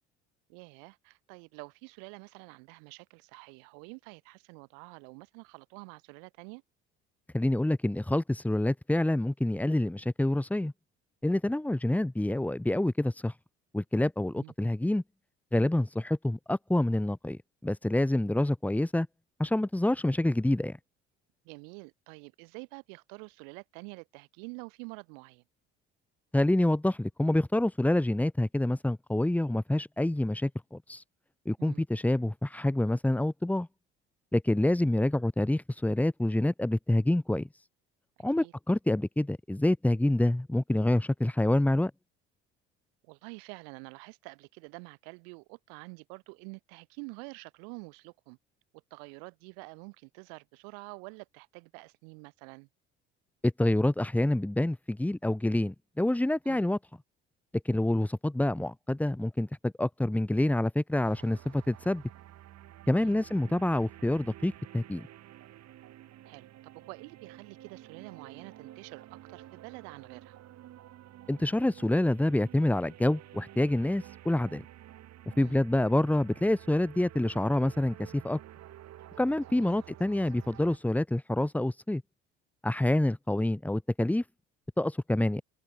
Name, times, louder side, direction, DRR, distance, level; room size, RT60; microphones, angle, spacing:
voice 1, 0.5-6.6 14.3-14.5 21.4-25.4 31.6-31.8 38.4-38.5 43.0-48.4 48.9-52.7 56.4-56.6 62.9-63.2 66.3-70.4 75.4-75.6 79.5-79.8, right 40 dB or more, 75° right, 3.0 m, -47 dB
voice 2, 7.3-10.7 11.2-13.3 13.7-15.0 15.5-19.1 19.4-20.8 26.3-31.0 31.5-33.7 34.3-37.6 38.2-41.9 53.4-56.8 57.6-62.0 62.9-65.1 71.3-74.6 75.4-78.4 79.2-82.0 82.6-84.2 84.8-85.4, left 1 dB, 5° left, 0.9 m, -27 dB
sound 1, 61.0-80.8, right 13 dB, 55° right, 2.3 m, -51 dB
open air
hypercardioid pair, 60°, 32 cm